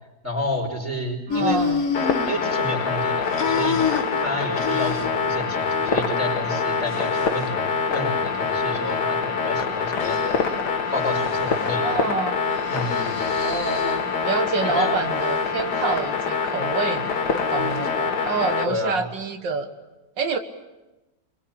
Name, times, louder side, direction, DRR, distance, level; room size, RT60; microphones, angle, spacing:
voice 1, 0.2-1.6 2.2-10.4 10.9-12.0 12.7-13.2 14.6-15.0 18.7-19.0, left 1 dB, 10° left, 0 dB, 5.0 m, -30 dB
sound 1, 1.3-2.9 3.2-5.3 5.7-6.0 6.5-7.5 8.2-9.0 10.0-10.5 10.9-11.7 12.5-14.2 14.7-15.5 17.3-18.0, left 6 dB, 45° left, 1.9 m, -30 dB
voice 2, 1.3-1.8 11.8-12.4 13.4-19.7 20.2-20.4, right 4 dB, 80° right, 7 dB, 2.1 m, -27 dB
sound 2, 1.9-18.7, left 5 dB, 65° left, 2.0 m, -25 dB
24.5 x 22.5 x 8.7 m, 1.0 s
omnidirectional pair, 1.9 m